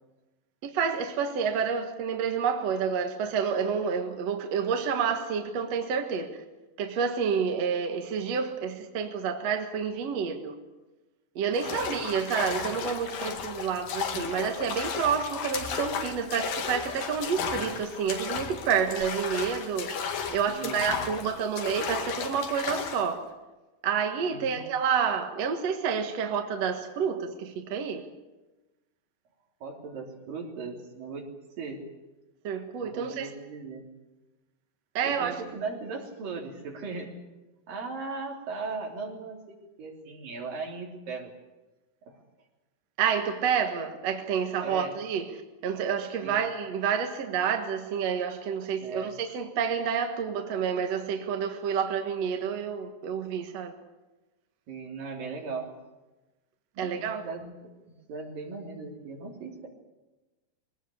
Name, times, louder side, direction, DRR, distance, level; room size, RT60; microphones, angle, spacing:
voice 1, 0.6-6.4 6.8-10.6 11.4-19.9 20.3-23.2 23.8-28.0 32.4-33.3 34.9-35.4 43.0-45.3 45.6-53.7 56.8-57.2, right 6 dB, 55° right, 2.4 m, -29 dB
sound 1, 11.6-23.1, left 6 dB, 80° left, 3.6 m, -34 dB
voice 2, 11.6-12.0 20.5-21.3 24.3-24.6 29.6-31.3 31.6-31.8 32.8-33.9 35.0-37.1 37.7-41.3 42.1-42.2 44.6-44.9 46.2-46.5 48.8-49.2 54.7-55.7 56.7-57.7 58.1-59.7, right 4 dB, 75° right, 5.0 m, -38 dB
22.5 x 18.0 x 8.5 m
omnidirectional pair, 3.9 m